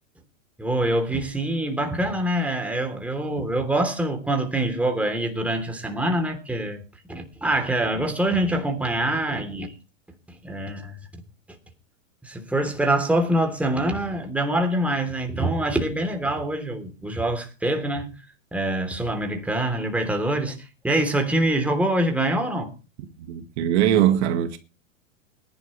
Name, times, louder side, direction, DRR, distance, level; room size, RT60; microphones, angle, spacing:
voice 1, 0.6-6.8 7.1-9.7 10.4-11.0 12.2-18.1 18.5-22.7, right 1 dB, 5° right, 3.3 m, -25 dB
voice 2, 23.3-24.6, right 11 dB, 60° right, 2.0 m, -21 dB
20.0 x 11.5 x 3.3 m
hypercardioid pair, 125°, 38 cm